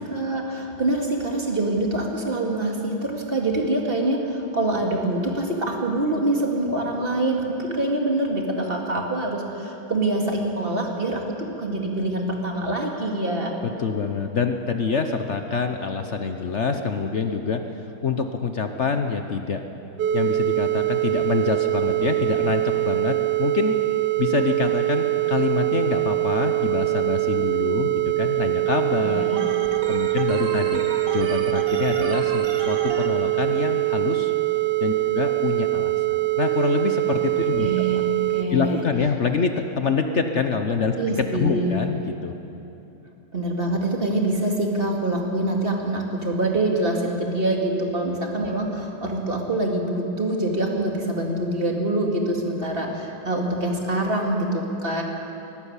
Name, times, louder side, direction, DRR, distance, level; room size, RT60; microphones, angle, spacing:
voice 1, 0.0-13.5 29.0-29.5 37.5-38.8 41.0-41.8 43.3-55.0, right 2 dB, 25° right, 1 dB, 2.3 m, -25 dB
voice 2, 13.8-17.6 18.0-19.6 20.1-23.8 24.2-29.2 29.9-30.8 31.1-34.3 34.8-37.7 38.5-42.3, left 5 dB, 55° left, 6 dB, 0.8 m, -26 dB
sound 1, 20.0-38.4, right 19 dB, 70° right, 1.1 m, -23 dB
Organ, 29.4-33.1, right 4 dB, 45° right, 1.5 m, -33 dB
21.5 x 12.0 x 9.9 m, 2.9 s
omnidirectional pair, 2.3 m